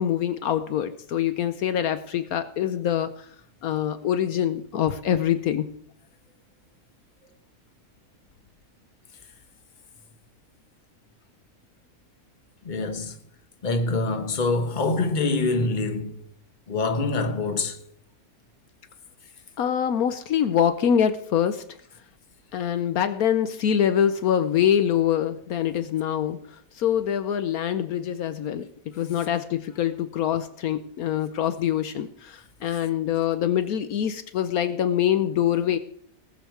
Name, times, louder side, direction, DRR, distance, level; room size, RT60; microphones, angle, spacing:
voice 1, 0.0-3.1 3.6-5.7 19.6-21.6 22.5-26.4 26.8-28.7 29.0-35.8, left 9 dB, 70° left, 1.2 m, -24 dB
voice 2, 12.6-13.2 13.6-16.2 16.7-17.8, left 3 dB, 35° left, 1.2 m, -25 dB
19.0 x 7.3 x 4.7 m
omnidirectional pair, 1.6 m